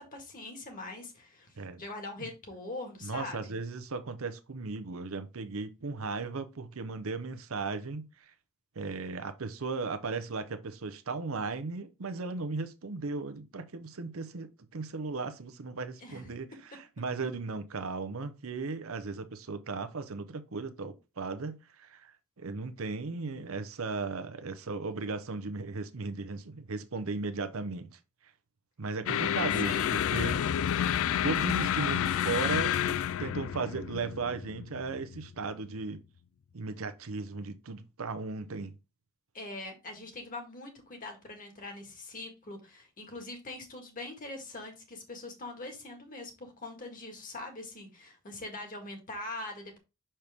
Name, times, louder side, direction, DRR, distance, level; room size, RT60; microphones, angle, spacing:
voice 1, 0.0-3.5 16.0-16.3 29.5-30.0 39.3-49.8, left 2 dB, 40° left, 1.8 m, -42 dB
voice 2, 3.0-8.3 8.8-28.0 28.8-30.4 31.2-36.0 36.5-38.7, right 4 dB, 70° right, 0.7 m, -36 dB
sound 1, 29.1-35.5, left 10 dB, 65° left, 0.3 m, -30 dB
6.5 x 4.3 x 3.5 m
head